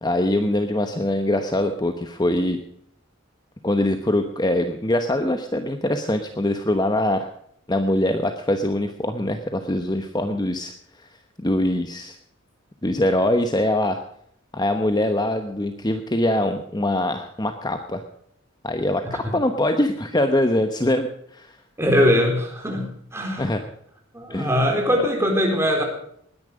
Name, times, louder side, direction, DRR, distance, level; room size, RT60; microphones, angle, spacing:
voice 1, 0.0-2.6 3.6-7.3 7.7-10.7 11.4-12.2 12.8-14.0 14.5-18.0 18.6-19.0 19.3-21.5 23.4-23.6 24.3-24.6, left 1 dB, 20° left, 7 dB, 1.0 m, -23 dB
voice 2, 21.8-23.5 24.1-25.8, equal, 15° right, 1 dB, 4.2 m, -21 dB
20.0 x 10.5 x 5.1 m, 0.66 s
head